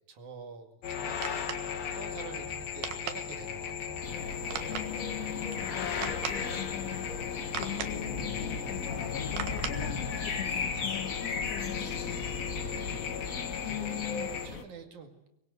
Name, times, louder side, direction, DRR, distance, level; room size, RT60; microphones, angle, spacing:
voice 1, 0.1-1.5 1.8-4.0 12.6-15.3, right 5 dB, 60° right, 6 dB, 3.4 m, -48 dB
sound 1, 0.8-14.5, left 8 dB, 85° left, 3.5 m, -37 dB
sound 2, 0.9-10.5, right 8 dB, 90° right, 3.4 m, -42 dB
sound 3, 4.0-14.6, left 4 dB, 45° left, 1.1 m, -37 dB
voice 2, 4.7-7.1 7.6-12.3 13.6-14.3, left 15 dB, 70° left, 10 dB, 2.7 m, -41 dB
24.0 x 21.5 x 8.0 m, 0.85 s
omnidirectional pair, 4.0 m